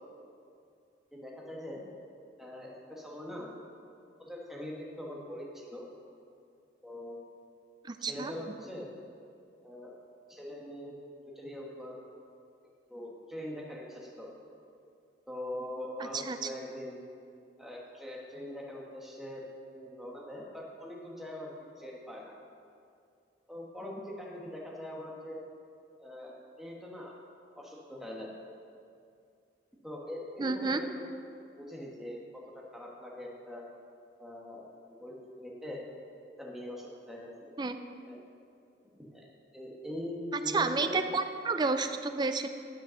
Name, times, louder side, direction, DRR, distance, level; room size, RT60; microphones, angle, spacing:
voice 1, 1.1-1.8 2.4-3.5 4.2-5.8 6.8-7.2 8.1-8.9 9.6-9.9 10.3-10.9 11.3-12.0 12.9-14.3 15.3-17.0 17.6-19.5 19.7-21.5 21.8-22.3 23.5-25.4 26.0-27.1 27.6-28.3 29.8-31.0 31.6-33.6 34.2-34.6 35.0-35.8 36.4-37.5 38.1-38.2 39.0-39.3 39.5-40.9, left 1 dB, ahead, -3 dB, 1.3 m, -42 dB
voice 2, 7.8-8.3 16.0-16.5 30.4-30.8 37.6-37.8 40.3-42.5, right 4 dB, 25° right, 8 dB, 0.4 m, -31 dB
10.0 x 5.6 x 6.4 m, 2.4 s
head